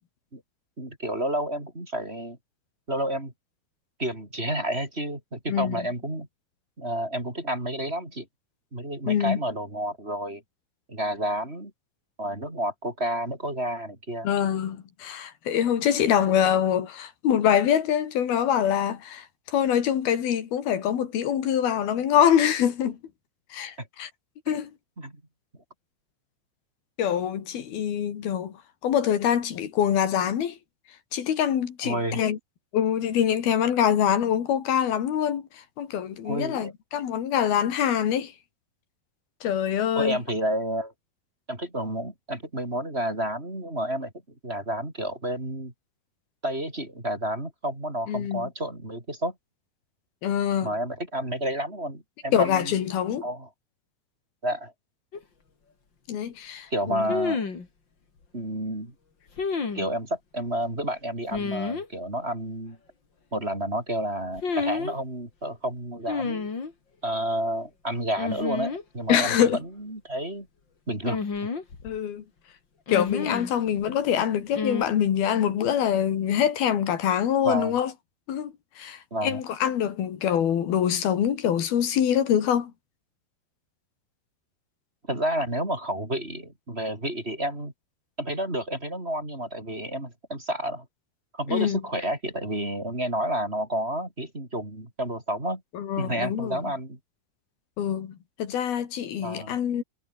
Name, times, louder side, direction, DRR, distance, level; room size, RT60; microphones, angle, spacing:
voice 1, 0.8-2.4 2.9-3.3 4.0-6.3 6.8-8.3 8.7-10.4 10.9-11.7 12.2-14.3 23.8-23.9 24.5-24.6 25.0-25.2 31.8-32.2 36.2-36.7 40.0-40.9 41.5-44.1 44.4-45.7 46.4-49.3 50.6-52.7 53.2-53.5 54.4-54.7 56.7-57.4 58.3-58.9 59.7-62.8 63.3-66.5 67.0-70.5 70.9-71.2 77.4-77.8 79.1-79.4 85.1-87.7 88.2-90.9 91.3-95.6 96.0-97.0 99.2-99.6, right 1 dB, 15° right, 5.5 m, -30 dB
voice 2, 5.5-5.8 9.1-9.4 14.2-23.0 23.5-24.1 24.5-24.7 27.0-28.5 28.8-30.6 31.1-32.4 32.7-35.4 35.8-38.3 39.4-40.2 48.1-48.5 50.2-50.7 52.3-53.3 56.1-57.1 69.1-69.6 71.8-72.2 72.9-77.9 78.3-82.7 91.5-91.8 95.7-96.6 97.8-99.8, left 9 dB, 90° left, 4.4 m, -24 dB
sound 1, 55.1-55.2 57.1-57.7 59.4-59.9 61.3-61.9 64.4-64.9 66.1-66.7 68.2-68.8 69.1-69.2 71.1-72.0 72.9-73.5 74.5-74.8, left 4 dB, 30° left, 3.4 m, -30 dB
omnidirectional pair, 4.2 m